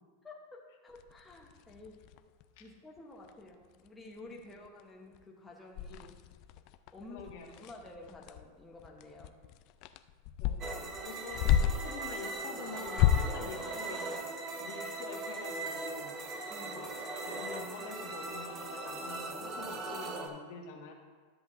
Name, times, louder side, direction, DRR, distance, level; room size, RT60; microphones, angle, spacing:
voice 1, 0.2-2.1 2.6-6.1 6.9-7.3 7.6-9.4 16.5-16.9, left 2 dB, 10° left, -2 dB, 0.9 m, -51 dB
sound 1, 0.9-2.4 3.0-3.1 3.3-3.5 3.9-4.0 4.3-4.8 5.1-5.2 5.7-12.0 12.8-13.4, left 10 dB, 45° left, 0.3 m, -32 dB
voice 2, 7.1-7.5 10.4-14.3 14.6-16.1 16.6-16.9 17.3-20.9, left 5 dB, 65° left, -1 dB, 1.6 m, -47 dB
sound 2, 10.6-20.3, right 3 dB, 30° right, 0.9 m, -39 dB
13.0 x 7.8 x 2.6 m, 1.5 s
supercardioid pair, 150°, 0 cm